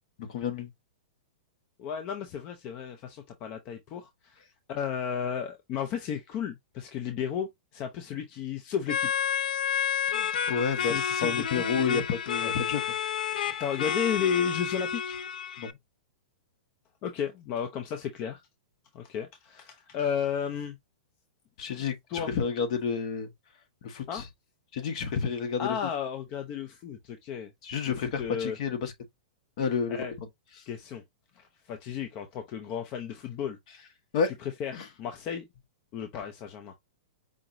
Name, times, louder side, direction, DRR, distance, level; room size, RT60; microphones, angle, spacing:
voice 1, 0.2-0.7 10.1-12.8 15.6-15.7 21.6-23.3 23.8-24.2 24.7-25.8 27.6-28.9 29.6-30.0 34.1-34.3 34.7-34.9, left 6 dB, 45° left, 1.0 m, -30 dB
voice 2, 1.8-4.4 4.7-9.1 10.8-12.0 12.4-12.5 13.4-15.2 17.0-18.4 18.9-20.8 22.1-22.3 24.1-24.3 25.6-27.5 27.9-28.6 29.9-30.1 30.7-31.0 31.3-33.8 34.3-34.7 35.0-35.5 35.9-36.7, left 8 dB, 25° left, 0.5 m, -33 dB
sound 1, 8.9-15.7, left 8 dB, 75° left, 0.5 m, -30 dB
5.0 x 2.9 x 2.6 m
supercardioid pair, 170°, 5 cm